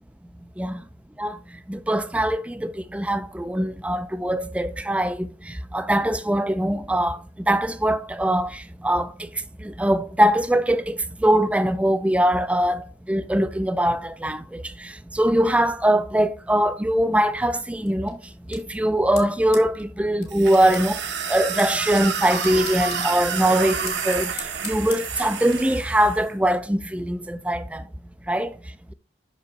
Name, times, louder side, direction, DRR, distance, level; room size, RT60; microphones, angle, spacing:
voice 1, 1.7-7.2 7.5-9.3 9.6-18.2 18.5-27.8 28.3-28.5, right 1 dB, 5° right, 0.3 m, -22 dB
sound 1, 17.8-25.6, left 6 dB, 60° left, 2.3 m, -43 dB
sound 2, 20.3-26.2, right 7 dB, 70° right, 0.9 m, -29 dB
6.2 x 5.2 x 4.0 m
head